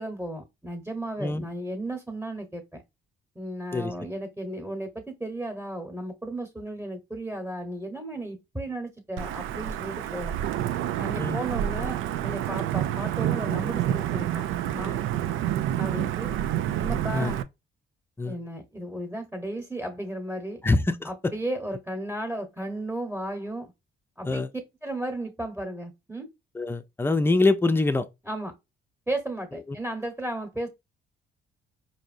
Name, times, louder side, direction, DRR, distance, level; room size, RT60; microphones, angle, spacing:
voice 1, 0.0-2.8 3.3-10.3 11.0-14.4 14.7-15.0 15.7-16.3 16.8-17.4 18.2-20.6 21.0-23.7 24.2-24.4 24.8-26.3 28.3-28.5 29.1-30.7, right 1 dB, 5° right, 1.1 m, -34 dB
Wind / Thunder / Rain, 9.2-17.4, right 11 dB, 85° right, 0.4 m, -28 dB
voice 2, 20.6-21.3 24.2-24.5 26.5-28.1, left 2 dB, 10° left, 0.5 m, -24 dB
4.6 x 2.7 x 2.6 m
cardioid pair, 90°, 20 cm